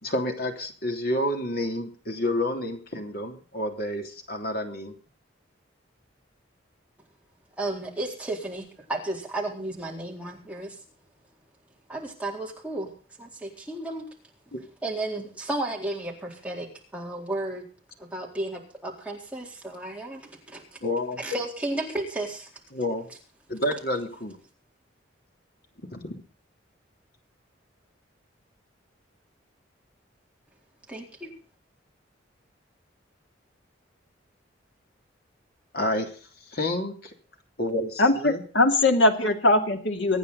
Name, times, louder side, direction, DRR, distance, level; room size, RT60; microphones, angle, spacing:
voice 1, 0.0-4.9 14.5-14.6 20.8-21.2 22.7-23.1 23.5-24.4 25.9-26.1 35.7-36.1 36.5-37.1 37.6-38.4, left 1 dB, 50° left, 3 dB, 3.2 m, -29 dB
voice 2, 7.6-10.8 11.9-12.9 13.2-14.1 14.8-17.7 18.0-20.6 21.2-22.5 30.9-31.3, right 2 dB, 5° right, -2 dB, 4.1 m, -33 dB
voice 3, 38.0-40.2, left 2 dB, 70° left, 4 dB, 2.7 m, -21 dB
24.5 x 9.5 x 4.1 m, 0.40 s
head